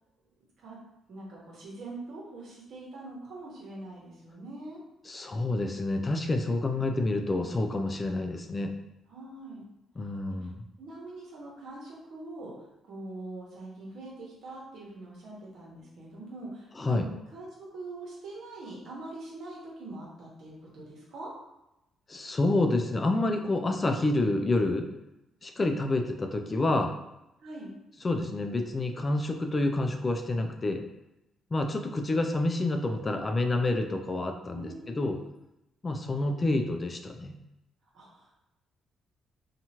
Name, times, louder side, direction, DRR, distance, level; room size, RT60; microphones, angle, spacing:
voice 1, 1.1-4.8 9.1-9.7 10.8-21.3 27.4-27.7 34.5-35.3 37.9-38.3, right 2 dB, 70° right, -3 dB, 1.0 m, -43 dB
voice 2, 5.1-8.7 10.0-10.5 16.8-17.1 22.1-24.9 25.4-26.9 28.0-30.8 31.5-35.2 35.8-37.3, left 2 dB, 30° left, 5 dB, 0.3 m, -28 dB
2.8 x 2.4 x 2.8 m, 0.90 s
cardioid pair, 90°, 0 cm